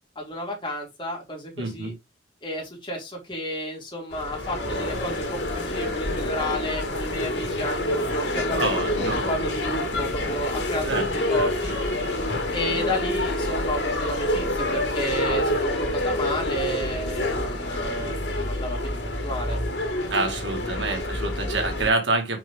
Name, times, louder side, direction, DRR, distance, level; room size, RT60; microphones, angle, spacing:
voice 1, 0.1-1.9 2.4-8.7 9.1-11.7 12.5-18.8 19.0-19.6 20.1-21.1, equal, 25° left, 3.2 m, -32 dB
voice 2, 1.6-1.9 8.6-9.2 10.8-11.1 11.3-11.5 20.1-22.4, right 3 dB, 90° right, 1.9 m, -27 dB
sound 1, 4.1-21.9, left 1 dB, 70° left, 2.3 m, -27 dB
6.1 x 5.0 x 3.4 m
head